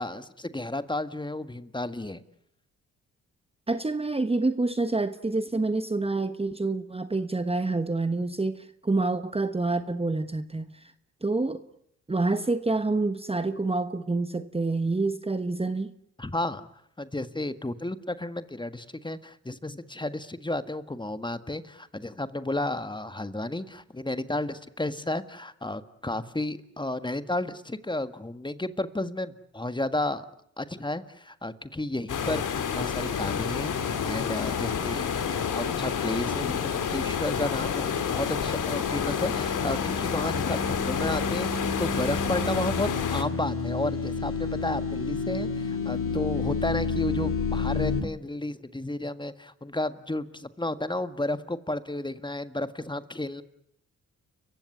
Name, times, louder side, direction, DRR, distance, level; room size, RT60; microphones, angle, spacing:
voice 1, 0.0-2.2 16.2-16.7 17.0-30.3 30.6-53.4, left 1 dB, 15° left, 11 dB, 1.7 m, -32 dB
voice 2, 3.7-10.9 11.2-11.6 12.1-15.9, right 3 dB, 15° right, 11 dB, 1.2 m, -27 dB
sound 1, 32.1-43.2, left 7 dB, 65° left, 2.7 m, -29 dB
sound 2, 38.3-48.0, left 4 dB, 40° left, 2.8 m, -31 dB
29.5 x 15.5 x 9.7 m, 0.74 s
supercardioid pair, 55°, 34 cm